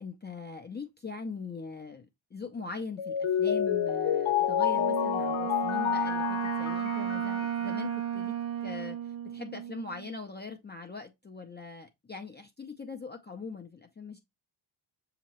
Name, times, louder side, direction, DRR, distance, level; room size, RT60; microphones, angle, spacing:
voice 1, 0.0-2.1 2.3-9.0 9.2-14.2, left 4 dB, 20° left, 0.5 m, -41 dB
Mallet percussion, 3.0-7.9, left 9 dB, 80° left, 0.8 m, -29 dB
Wind instrument woodwind instrument, 4.7-10.2, right 9 dB, 50° right, 0.4 m, -34 dB
6.2 x 2.9 x 2.9 m
wide cardioid pair, 110°, 48 cm